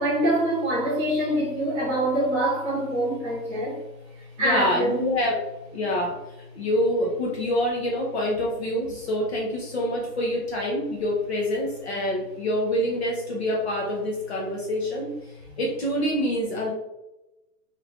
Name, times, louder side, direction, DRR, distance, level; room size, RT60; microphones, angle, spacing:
voice 1, 0.0-3.8 4.4-5.0, right 1 dB, 15° right, -8 dB, 0.9 m, -24 dB
voice 2, 4.4-5.4 5.7-6.2 6.5-15.1 15.6-16.7, left 1 dB, 40° left, -2 dB, 0.6 m, -26 dB
3.2 x 2.4 x 3.4 m, 0.97 s
hypercardioid pair, 170°, 49 cm